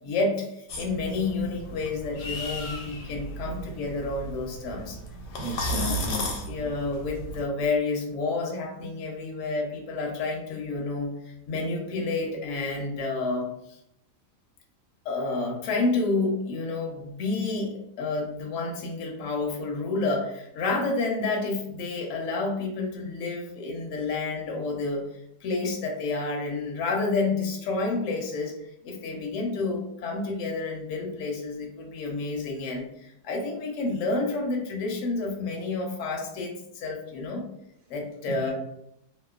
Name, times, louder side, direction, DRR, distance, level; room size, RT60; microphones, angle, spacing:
voice 1, 0.0-5.0 5.7-6.0 6.4-13.8 15.0-25.1 25.4-37.4 37.9-38.5, left 3 dB, 65° left, 0 dB, 0.7 m, -30 dB
sound 1, 0.7-7.4, equal, 85° left, 1.2 m, -35 dB
voice 2, 5.4-6.7 38.3-38.5, left 1 dB, 65° right, -2 dB, 1.1 m, -34 dB
2.9 x 2.0 x 2.3 m, 0.76 s
omnidirectional pair, 1.8 m